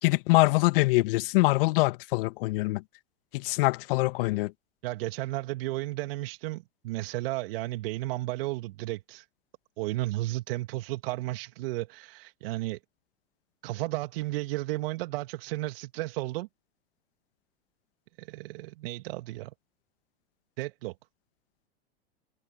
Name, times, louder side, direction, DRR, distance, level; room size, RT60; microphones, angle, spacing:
voice 1, 0.0-2.8 3.3-4.5, left 22 dB, 55° left, 1.9 m, -24 dB
voice 2, 4.8-9.3 9.8-12.8 13.6-16.5 18.2-19.5 20.6-20.9, right 19 dB, 60° right, 2.1 m, -33 dB
hypercardioid pair, 95°, 33 cm